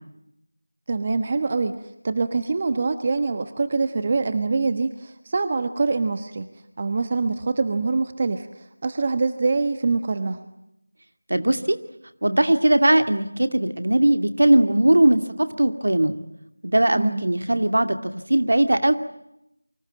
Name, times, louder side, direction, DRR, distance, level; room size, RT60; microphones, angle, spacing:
voice 1, 0.9-1.8 2.0-6.5 6.8-10.4 17.0-17.2, right 3 dB, 30° right, 10 dB, 1.2 m, -24 dB
voice 2, 11.3-11.8 12.2-16.2 16.6-19.0, right 1 dB, 65° right, 8 dB, 2.3 m, -19 dB
28.5 x 25.0 x 7.6 m, 0.81 s
figure-of-eight pair, 170°, 0 cm